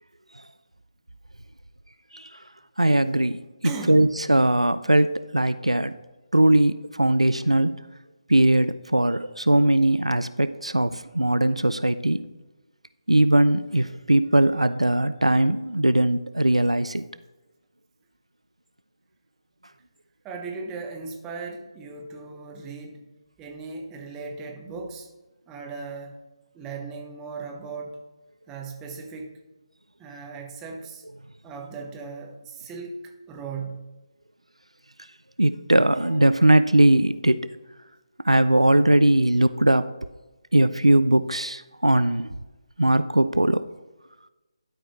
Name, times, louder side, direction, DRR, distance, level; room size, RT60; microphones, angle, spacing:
voice 1, 2.8-3.4 3.6-5.9 6.3-7.8 8.3-12.3 13.1-17.0 35.4-37.4 38.2-39.9 40.5-42.4 42.8-43.6, right 1 dB, 90° right, 13 dB, 0.4 m, -20 dB
voice 2, 3.6-4.1 20.2-23.0 23.4-25.1 25.5-26.2 26.5-28.0 28.5-29.4 30.0-31.0 31.4-33.9, right 4 dB, 10° right, 2 dB, 0.8 m, -37 dB
12.0 x 5.0 x 3.0 m, 1.1 s
figure-of-eight pair, 150°, 3 cm